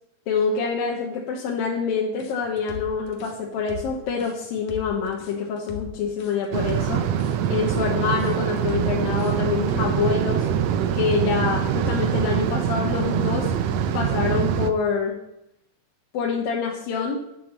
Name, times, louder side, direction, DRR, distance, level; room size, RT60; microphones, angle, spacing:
voice 1, 0.3-7.0 7.5-10.5 10.9-13.5 13.9-15.2 16.1-17.2, left 5 dB, 85° left, -1 dB, 3.0 m, -26 dB
sound 1, 2.2-10.1, left 5 dB, 60° left, 2.6 m, -38 dB
sound 2, 6.5-14.7, right 9 dB, 80° right, 1.5 m, -24 dB
10.5 x 9.3 x 7.4 m, 0.84 s
omnidirectional pair, 4.0 m